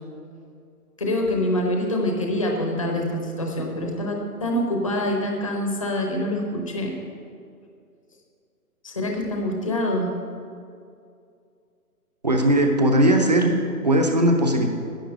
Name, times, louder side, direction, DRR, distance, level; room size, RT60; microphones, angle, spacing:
voice 1, 1.0-6.9 8.8-10.1, left 1 dB, 20° left, 1 dB, 0.8 m, -25 dB
voice 2, 12.2-13.5 13.8-14.7, right 1 dB, 25° right, 4 dB, 0.8 m, -18 dB
10.5 x 7.2 x 9.5 m, 2.4 s
hypercardioid pair, 175°, 47 cm